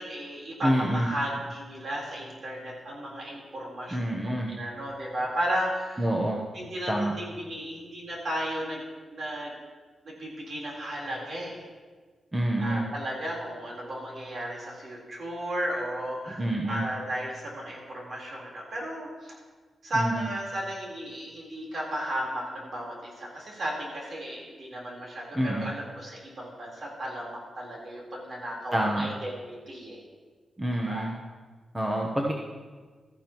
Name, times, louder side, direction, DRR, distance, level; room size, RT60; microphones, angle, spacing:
voice 1, 0.0-6.0 6.5-8.8 9.1-9.5 10.0-11.7 12.6-19.4 19.8-29.4 29.7-30.0 30.7-31.1, equal, 50° right, -3 dB, 3.8 m, -34 dB
voice 2, 0.6-1.1 3.9-4.5 6.0-6.4 6.9-7.1 12.3-12.9 16.4-16.8 19.9-20.3 25.3-25.7 28.7-29.1 30.6-31.1 31.7-32.3, right 1 dB, 15° right, -1 dB, 1.0 m, -27 dB
16.0 x 13.5 x 3.0 m, 1.4 s
wide cardioid pair, 130°, 0 cm